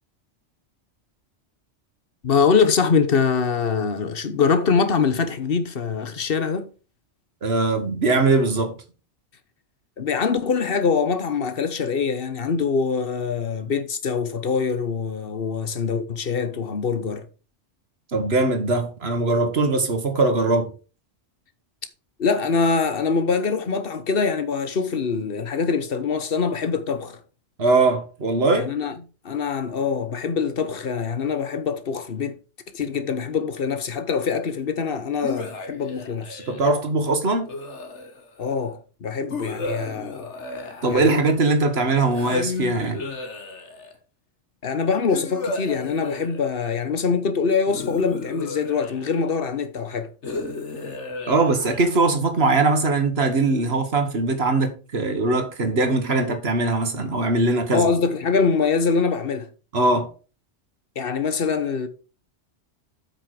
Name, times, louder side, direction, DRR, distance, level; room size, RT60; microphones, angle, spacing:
voice 1, 2.2-6.7 10.0-17.3 22.2-27.2 28.6-29.0 29.2-32.4 32.7-36.4 38.4-40.3 40.9-41.2 44.6-50.1 57.7-59.5 60.9-61.9, left 5 dB, 55° left, 1.2 m, -24 dB
voice 2, 7.4-8.7 18.1-20.7 27.6-28.7 36.5-37.5 40.8-43.0 51.3-57.8 59.7-60.1, right 3 dB, 60° right, 1.7 m, -21 dB
sound 1, 35.2-36.7 37.5-38.4 39.3-41.5 42.1-44.0 45.1-46.8 47.7-49.3 50.2-52.2, left 3 dB, 70° left, 1.8 m, -33 dB
8.2 x 6.0 x 4.8 m
omnidirectional pair, 1.2 m